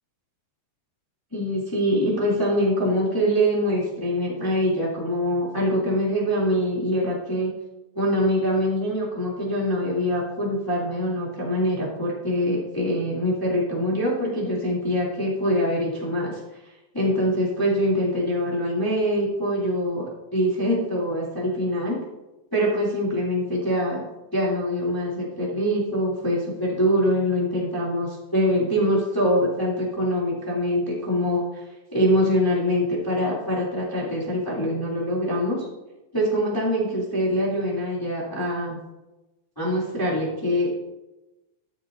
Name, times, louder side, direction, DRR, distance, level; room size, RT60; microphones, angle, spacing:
voice 1, 1.3-7.5 7.9-16.4 16.9-22.0 22.5-24.0 24.3-31.6 31.9-35.6 36.1-38.8 39.6-40.7, equal, 5° left, -6 dB, 2.3 m, -24 dB
13.5 x 10.5 x 2.7 m, 1.0 s
omnidirectional pair, 3.6 m